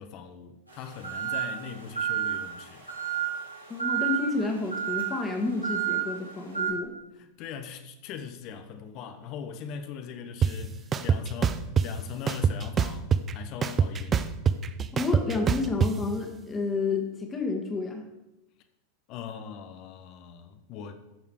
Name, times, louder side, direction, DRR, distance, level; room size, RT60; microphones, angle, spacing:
voice 1, 0.0-2.9 7.2-14.4 19.1-20.9, left 7 dB, 40° left, 1.0 m, -41 dB
sound 1, 0.7-6.7, right 10 dB, 90° right, 3.9 m, -31 dB
voice 2, 3.7-6.9 14.9-18.1, left 3 dB, 20° left, 1.9 m, -30 dB
sound 2, 10.4-10.5 10.9-11.9 12.3-13.3 13.6-15.9, right 7 dB, 25° right, 0.5 m, -24 dB
14.0 x 7.0 x 4.8 m
figure-of-eight pair, 90°, 0 cm